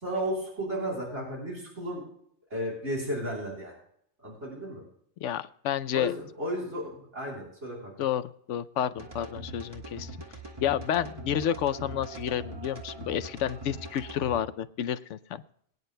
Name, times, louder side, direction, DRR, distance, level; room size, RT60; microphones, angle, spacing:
voice 1, 0.0-2.0 2.5-3.7 4.2-4.8 5.9-7.9, equal, 85° right, -4 dB, 3.9 m, -33 dB
voice 2, 5.2-6.1 8.0-8.2 8.5-10.1 10.6-15.4, left 10 dB, 90° left, 14 dB, 0.9 m, -30 dB
sound 1, 9.0-14.4, right 2 dB, 20° right, 1.6 m, -42 dB
22.5 x 9.6 x 2.2 m, 0.68 s
omnidirectional pair, 1.2 m